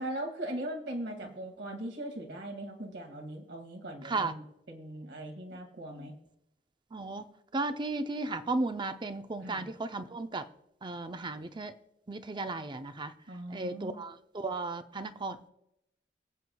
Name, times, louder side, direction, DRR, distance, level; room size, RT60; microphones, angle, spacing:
voice 1, 0.0-6.1 9.4-9.7 13.3-14.0, right 1 dB, 70° right, 2 dB, 2.1 m, -40 dB
voice 2, 6.9-10.5 10.8-11.8 12.1-13.1 13.5-15.5, right 3 dB, 25° right, 9 dB, 0.6 m, -35 dB
23.5 x 7.9 x 2.3 m, 0.82 s
head